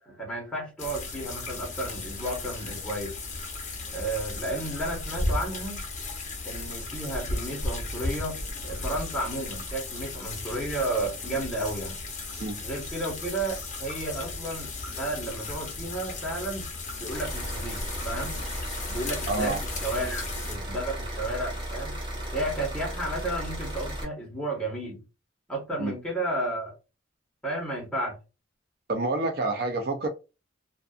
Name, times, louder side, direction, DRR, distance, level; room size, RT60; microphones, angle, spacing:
voice 1, 0.0-3.2 3.9-5.8 6.4-12.0 12.6-16.7 17.0-18.4 18.9-19.6 19.8-22.0 22.3-25.0 25.5-26.7 27.4-28.2, right 1 dB, 5° left, 1.0 m, -32 dB
sound 1, 0.8-20.6, left 2 dB, 40° left, 0.7 m, -35 dB
sound 2, 17.1-24.0, right 1 dB, 25° right, 0.8 m, -35 dB
voice 2, 19.3-19.6 25.8-25.9 28.9-30.1, right 2 dB, 50° right, 0.4 m, -28 dB
2.5 x 2.4 x 2.3 m
head